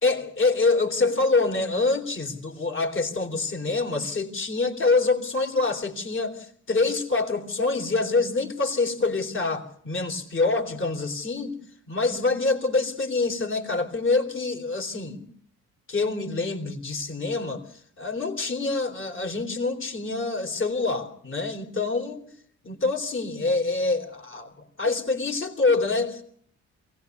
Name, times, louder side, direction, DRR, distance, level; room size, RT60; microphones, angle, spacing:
voice 1, 0.0-11.5 11.9-15.2 15.9-17.6 18.0-22.3 22.6-26.2, left 3 dB, 40° left, 4 dB, 3.7 m, -26 dB
22.5 x 18.0 x 9.6 m, 0.66 s
cardioid pair, 90°, 30 cm